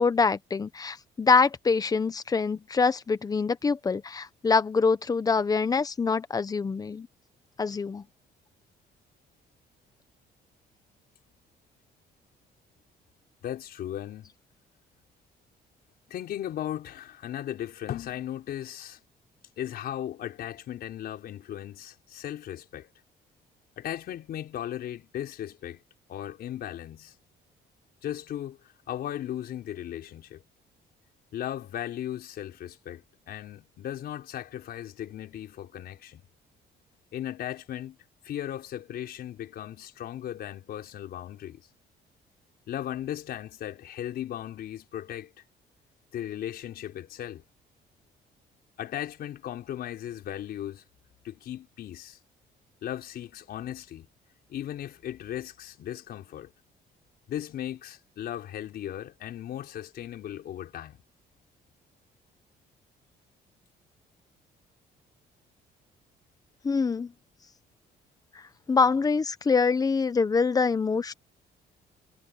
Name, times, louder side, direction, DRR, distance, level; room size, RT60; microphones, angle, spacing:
voice 1, 0.0-7.1 7.6-8.0 66.6-67.1 68.3-68.4 68.7-71.1, left 4 dB, 20° left, 1.0 m, -25 dB
voice 2, 13.4-14.3 16.1-19.0 19.6-22.9 23.8-25.8 26.1-27.1 28.0-28.6 28.9-30.4 31.3-36.2 37.1-38.0 38.2-41.6 42.7-45.3 46.1-47.4 48.8-50.8 51.2-52.2 52.8-54.1 54.5-56.5 57.3-61.0, left 11 dB, 60° left, 4.9 m, -37 dB
cardioid pair, 155°, 18 cm